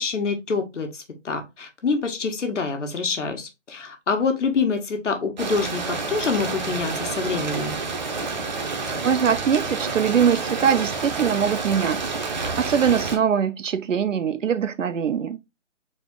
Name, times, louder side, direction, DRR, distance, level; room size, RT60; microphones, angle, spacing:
voice 1, 0.0-7.8, left 4 dB, 70° left, 1.4 m, -26 dB
sound 1, 5.4-13.2, right 4 dB, 35° right, 0.7 m, -29 dB
voice 2, 9.0-12.0 12.3-15.4, right 7 dB, 75° right, 0.7 m, -22 dB
4.2 x 2.8 x 3.6 m
hypercardioid pair, 160°, 38 cm